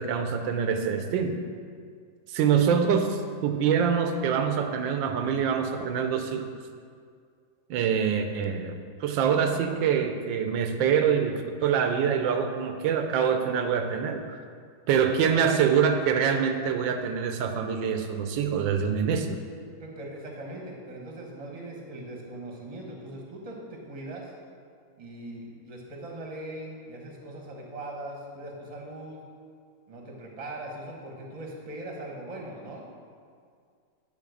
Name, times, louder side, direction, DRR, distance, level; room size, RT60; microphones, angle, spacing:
voice 1, 0.0-1.4 2.3-6.5 7.7-14.4 14.9-19.4, right 7 dB, 75° right, 6 dB, 1.4 m, -25 dB
voice 2, 19.8-24.3 25.0-29.2 29.9-32.9, right 1 dB, 25° right, -1 dB, 1.1 m, -40 dB
9.9 x 3.9 x 6.4 m, 2.1 s
omnidirectional pair, 2.1 m